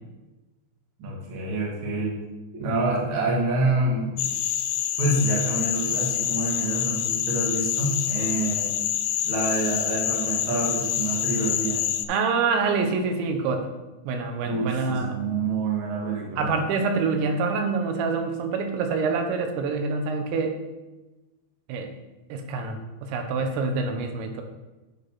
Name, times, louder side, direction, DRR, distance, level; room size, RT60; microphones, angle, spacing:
voice 1, 1.0-2.2 2.5-4.2 5.0-8.7 9.2-11.8 14.4-16.5, right 2 dB, 55° right, -4 dB, 1.4 m, -27 dB
sound 1, 4.2-12.1, left 11 dB, 90° left, 2.3 m, -27 dB
voice 2, 12.1-13.7 14.1-15.2 16.4-20.6 21.7-21.9 22.3-24.4, right 4 dB, 80° right, 5 dB, 3.1 m, -26 dB
9.8 x 3.4 x 5.6 m, 1.1 s
omnidirectional pair, 5.2 m